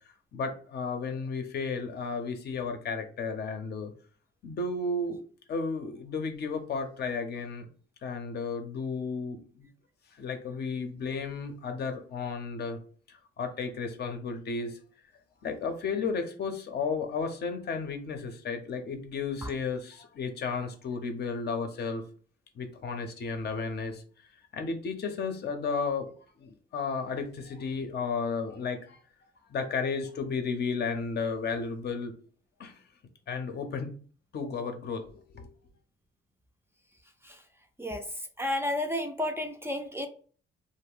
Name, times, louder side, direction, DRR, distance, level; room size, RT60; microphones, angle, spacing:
voice 1, 0.3-3.9 4.4-5.2 5.5-7.7 8.0-9.7 10.1-12.8 13.1-14.8 15.4-22.0 22.5-24.0 24.5-26.1 26.4-29.0 29.5-32.1 32.6-32.8 33.3-33.9 34.3-35.5, left 4 dB, 55° left, 6 dB, 0.6 m, -33 dB
voice 2, 38.4-40.1, left 1 dB, 10° right, 4 dB, 0.4 m, -31 dB
2.4 x 2.0 x 3.5 m, 0.42 s
cardioid pair, 90°, 20 cm